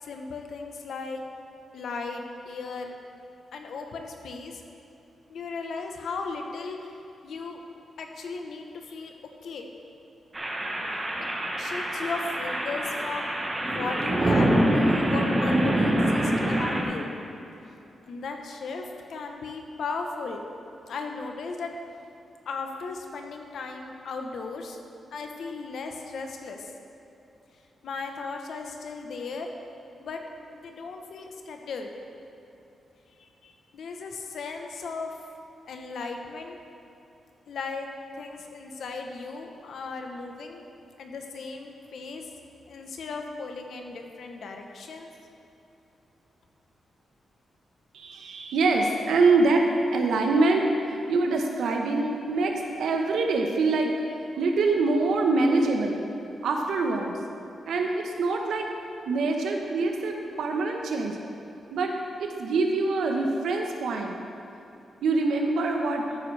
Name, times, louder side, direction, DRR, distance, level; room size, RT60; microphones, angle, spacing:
voice 1, 0.0-1.2 1.7-2.9 3.5-4.6 5.3-6.9 7.2-7.6 8.0-9.1 9.4-9.7 11.6-13.3 13.7-14.5 14.7-17.1 18.1-20.5 20.9-21.7 22.5-24.8 25.1-26.7 27.8-29.5 30.0-30.2 30.6-31.9 33.2-35.2 35.7-36.6 37.5-37.9 38.2-40.7 41.0-42.3 42.7-45.1, left 4 dB, 65° left, 3 dB, 1.0 m, -36 dB
sound 1, 10.3-16.8, right 1 dB, 20° right, 1.1 m, -25 dB
voice 2, 47.9-50.7 51.1-56.0 56.4-57.1 57.7-58.7 59.1-61.2 61.7-61.9 62.2-64.2 65.0-66.0, right 3 dB, 85° right, 2 dB, 1.1 m, -24 dB
13.0 x 9.1 x 3.4 m, 2.9 s
wide cardioid pair, 170°, 0 cm